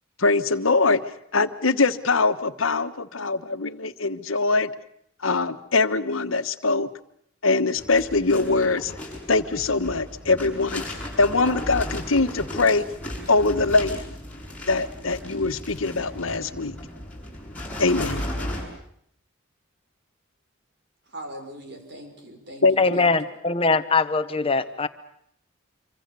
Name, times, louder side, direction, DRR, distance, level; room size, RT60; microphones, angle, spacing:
voice 1, 0.2-1.0 1.3-4.7 5.2-6.9 7.4-8.9 9.3-12.8 13.3-14.0 14.7-16.8 17.8-18.2 22.6-23.0, left 3 dB, 80° left, 1.4 m, -22 dB
sound 1, 7.8-18.6, left 1 dB, 5° left, 6.7 m, -35 dB
voice 2, 21.1-23.1, right 1 dB, 55° right, 5.3 m, -41 dB
voice 3, 22.8-24.9, left 3 dB, 25° left, 1.0 m, -22 dB
26.5 x 25.0 x 6.9 m
head